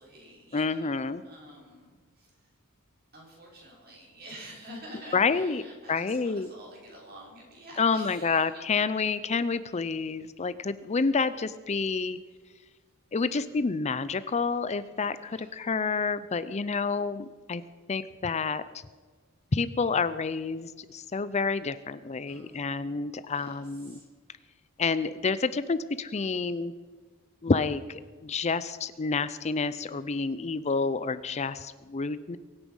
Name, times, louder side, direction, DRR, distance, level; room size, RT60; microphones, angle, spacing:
voice 1, 0.0-2.5 3.1-8.5 13.1-13.7 14.9-15.5 22.3-22.8 23.3-24.1, equal, 45° right, -3 dB, 6.1 m, -49 dB
voice 2, 0.5-1.2 5.1-5.6 5.9-6.5 7.8-12.2 13.1-17.6 17.9-18.8 19.5-24.0 24.8-26.7 27.4-32.4, left 4 dB, 30° left, 14 dB, 0.5 m, -29 dB
23.5 x 9.9 x 5.5 m, 1.5 s
head